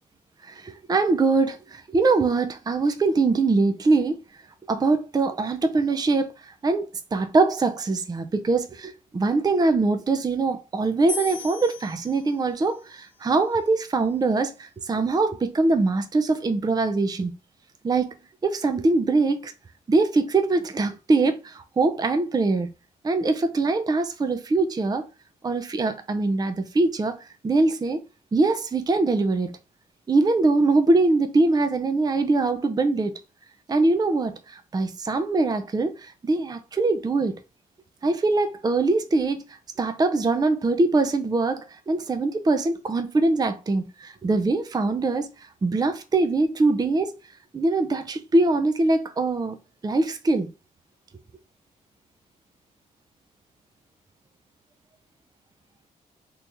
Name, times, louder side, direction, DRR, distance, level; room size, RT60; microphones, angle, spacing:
voice 1, 0.4-4.2 4.7-17.3 17.8-18.1 18.4-19.5 19.9-22.7 23.0-25.0 25.4-28.0 28.3-29.5 30.1-33.1 33.7-37.4 38.0-39.4 39.8-45.3 45.6-47.1 47.5-49.6 49.8-50.5, right 3 dB, 25° right, 0.5 m, -23 dB
sound 1, 11.1-14.3, left 6 dB, 40° left, 1.0 m, -39 dB
3.0 x 2.8 x 3.5 m
supercardioid pair, 60°, 16 cm